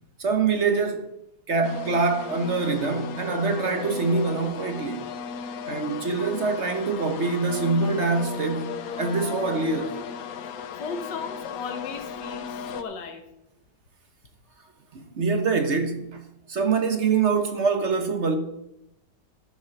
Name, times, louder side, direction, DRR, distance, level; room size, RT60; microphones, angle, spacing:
voice 1, 0.2-1.1 1.5-5.1 5.7-9.9 14.9-16.2 16.5-18.4, right 4 dB, 45° right, 1.2 m, -25 dB
sound 1, 1.6-12.8, left 7 dB, 65° left, 1.1 m, -36 dB
voice 2, 10.8-13.2, left 5 dB, 90° left, 1.9 m, -35 dB
12.5 x 6.2 x 5.9 m
omnidirectional pair, 1.8 m